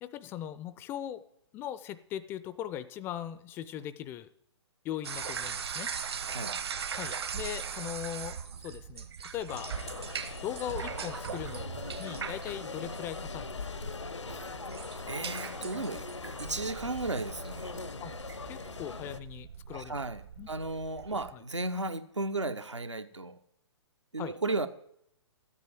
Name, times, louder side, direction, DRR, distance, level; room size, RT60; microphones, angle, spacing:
voice 1, 0.0-1.2 1.5-4.3 4.8-5.9 7.0-8.4 8.6-9.7 10.4-13.9 18.0-18.2 18.5-20.0 20.4-20.5 21.3-21.4 24.2-24.4, left 11 dB, 15° left, 15 dB, 0.4 m, -39 dB
sound 1, 5.0-21.3, right 6 dB, 60° right, 1.4 m, -40 dB
voice 2, 6.2-6.5 14.3-14.5 15.1-17.8 19.7-23.4 24.1-24.7, right 2 dB, 80° right, 10 dB, 1.0 m, -35 dB
sound 2, 9.5-19.2, left 4 dB, 80° left, 0.8 m, -41 dB
13.5 x 8.4 x 7.5 m, 0.74 s
figure-of-eight pair, 125°, 15 cm